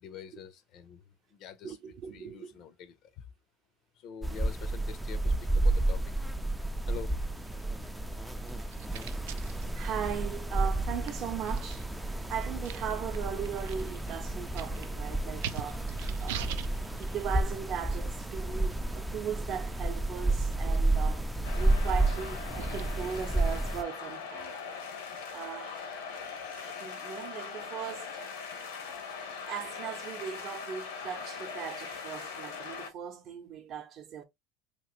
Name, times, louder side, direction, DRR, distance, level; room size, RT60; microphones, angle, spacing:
voice 1, 0.0-1.8 2.1-3.3 3.9-6.1 6.9-7.2, left 8 dB, 50° left, 0.5 m, -45 dB
voice 2, 1.6-2.5 9.3-16.4 17.0-24.5 24.9-25.0 25.3-25.9 26.6-28.2 28.9-29.0 29.5-34.2, right 8 dB, 45° right, 0.6 m, -38 dB
sound 1, 4.2-23.8, right 2 dB, 5° right, 0.3 m, -31 dB
sound 2, 6.7-23.6, right 11 dB, 80° right, 0.3 m, -47 dB
sound 3, 21.4-32.9, left 6 dB, 85° left, 1.0 m, -41 dB
2.9 x 2.5 x 2.9 m
supercardioid pair, 130°, 0 cm